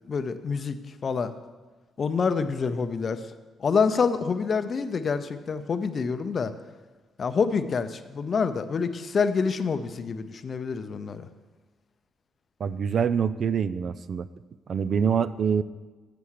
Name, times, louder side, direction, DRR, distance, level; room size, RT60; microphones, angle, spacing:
voice 1, 0.1-0.8 1.0-1.3 2.0-3.2 3.6-6.5 7.2-11.3, left 5 dB, 45° left, 11 dB, 0.6 m, -27 dB
voice 2, 12.6-14.3 14.7-15.6, right 7 dB, 55° right, 15 dB, 0.3 m, -25 dB
7.2 x 6.8 x 6.4 m, 1.3 s
cardioid pair, 90°, 0 cm